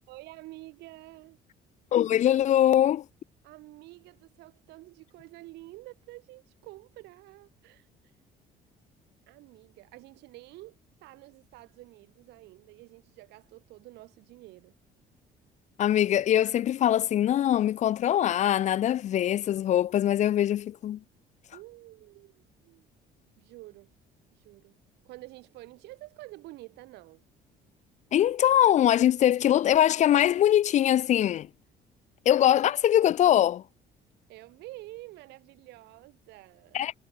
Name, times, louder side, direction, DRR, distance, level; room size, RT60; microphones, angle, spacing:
voice 1, 0.1-1.4 3.4-7.9 9.3-14.7 21.5-22.9 23.4-23.9 24.3-24.8 25.0-27.2 34.3-36.9, right 19 dB, 90° right, 4.0 m, -49 dB
voice 2, 1.9-3.0 15.8-21.0 28.1-31.5 32.3-33.6 36.7-36.9, left 11 dB, 45° left, 0.4 m, -22 dB
cardioid pair, 110°, 17 cm